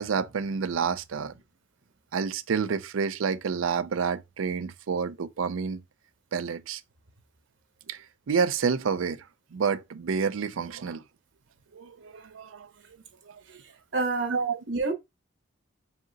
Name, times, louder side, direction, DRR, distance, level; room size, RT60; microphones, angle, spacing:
voice 1, 0.0-1.3 2.1-5.8 6.3-6.8 7.9-8.0 8.3-9.2 9.5-11.0 11.7-12.7 14.3-14.6, right 6 dB, 85° right, 0.5 m, -29 dB
voice 2, 13.9-14.9, right 3 dB, 65° right, 1.0 m, -28 dB
4.8 x 2.8 x 2.8 m
head